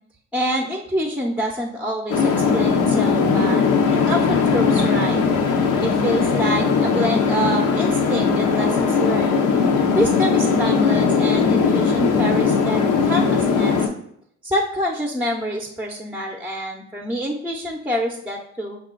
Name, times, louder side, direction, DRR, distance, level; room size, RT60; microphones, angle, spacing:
voice 1, 0.3-3.6 3.9-5.2 5.8-9.4 9.9-13.9 14.4-18.8, equal, 5° right, 1 dB, 0.6 m, -26 dB
sound 1, 2.1-13.9, left 5 dB, 85° left, 0.7 m, -19 dB
5.5 x 2.4 x 3.7 m, 0.69 s
cardioid pair, 90°, 30 cm